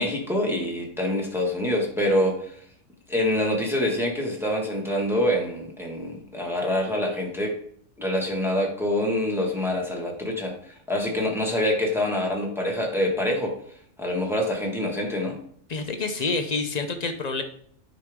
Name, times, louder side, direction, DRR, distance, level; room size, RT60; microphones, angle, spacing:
voice 1, 0.0-2.6 3.1-7.5 8.0-15.4, left 1 dB, ahead, -1 dB, 1.5 m, -26 dB
voice 2, 15.7-17.4, left 3 dB, 40° left, 7 dB, 0.7 m, -27 dB
9.6 x 5.1 x 3.7 m, 0.63 s
omnidirectional pair, 1.4 m